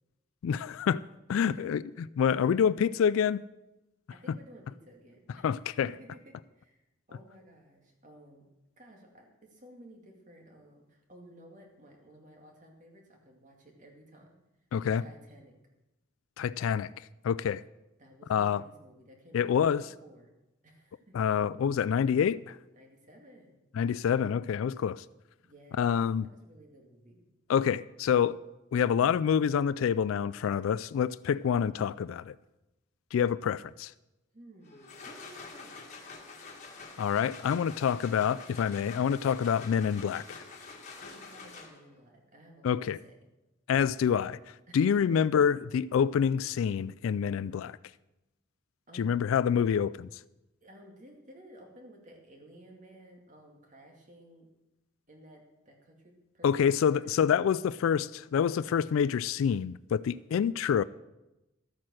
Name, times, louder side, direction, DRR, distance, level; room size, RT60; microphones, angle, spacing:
voice 1, 0.4-1.0 1.3-1.8 2.2-3.4 5.4-5.9 14.7-15.0 16.4-16.9 17.2-17.6 18.3-18.6 19.3-19.8 21.1-22.6 23.7-25.0 25.8-26.3 27.5-28.4 28.7-32.3 33.1-33.9 37.0-40.4 42.6-43.0 43.7-44.4 44.7-47.8 48.9-50.1 56.4-60.8, left 7 dB, 85° left, 0.3 m, -27 dB
voice 2, 1.4-1.8 4.1-5.5 5.8-6.8 7.1-8.4 8.8-14.4 14.8-15.6 18.0-20.3 20.6-21.2 22.7-23.6 25.4-27.3 34.3-35.8 41.0-43.1 44.7-45.2 48.9-49.2 50.6-54.5 55.1-57.1, right 1 dB, 40° right, 2.3 m, -54 dB
sound 1, 34.6-42.0, left 4 dB, 35° left, 1.7 m, -47 dB
13.0 x 8.6 x 6.3 m
head